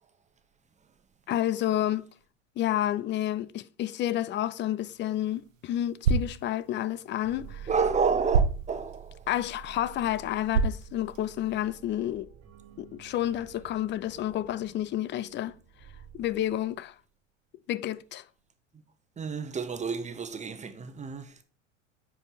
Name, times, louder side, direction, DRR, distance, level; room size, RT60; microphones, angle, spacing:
voice 1, 1.3-2.1 2.6-7.7 9.3-12.3 12.8-15.5 16.1-16.9 17.7-18.2, left 12 dB, 30° left, 0.5 m, -30 dB
sound 1, 4.8-11.7, right 5 dB, 85° right, 1.1 m, -32 dB
sound 2, 7.2-16.9, right 9 dB, 40° right, 1.7 m, -48 dB
voice 2, 7.7-9.2 19.2-21.3, right 5 dB, 20° right, 1.1 m, -30 dB
10.5 x 4.9 x 4.1 m
hypercardioid pair, 90°, 38 cm